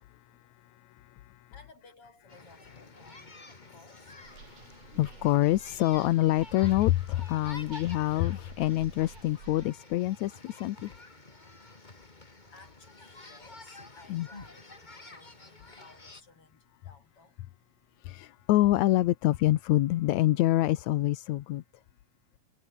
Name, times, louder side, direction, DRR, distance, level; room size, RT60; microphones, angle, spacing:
voice 1, 0.8-1.5 4.9-10.9 14.1-14.3 18.0-21.6, left 15 dB, 75° left, 2.2 m, -26 dB
voice 2, 1.5-4.2 12.0-17.4, left 3 dB, 45° left, 6.9 m, -58 dB
sound 1, 2.3-16.2, left 2 dB, 15° left, 2.2 m, -50 dB
sound 2, 4.2-9.7, right 6 dB, 70° right, 4.7 m, -51 dB
omnidirectional pair, 3.4 m